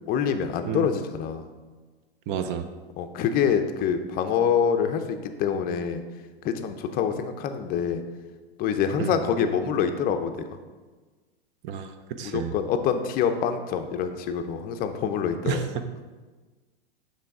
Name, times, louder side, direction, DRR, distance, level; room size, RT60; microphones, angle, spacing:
voice 1, 0.0-1.5 3.0-6.0 6.4-8.0 8.6-10.4 12.2-15.7, left 7 dB, 30° left, 7 dB, 0.5 m, -26 dB
voice 2, 2.3-2.7 9.0-9.2 11.6-12.5 15.4-15.6, right 8 dB, 35° right, 9 dB, 0.5 m, -30 dB
6.7 x 3.3 x 4.8 m, 1.3 s
hypercardioid pair, 110°, 30 cm